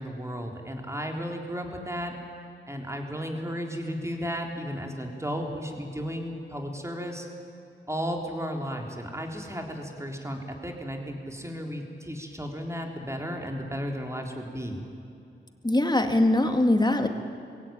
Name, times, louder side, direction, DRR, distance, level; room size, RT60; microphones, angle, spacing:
voice 1, 0.0-2.1 2.7-7.3 7.9-14.8, equal, 15° right, 2 dB, 3.8 m, -34 dB
voice 2, 15.6-17.1, left 1 dB, 20° left, 6 dB, 2.1 m, -22 dB
22.0 x 17.0 x 9.2 m, 2.6 s
cardioid pair, 45°, 21 cm